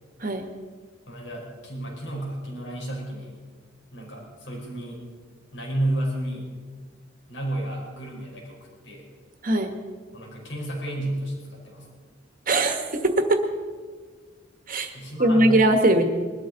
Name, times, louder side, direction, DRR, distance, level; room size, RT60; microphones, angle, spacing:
voice 1, 1.1-3.4 3.9-5.0 5.5-6.5 7.3-9.1 10.1-11.9 14.9-15.6, right 1 dB, 65° left, -1 dB, 4.6 m, -32 dB
voice 2, 9.4-9.7 12.5-13.4 14.7-14.9 15.2-16.1, right 1 dB, 45° right, 6 dB, 1.5 m, -20 dB
21.5 x 12.5 x 4.0 m, 1.5 s
head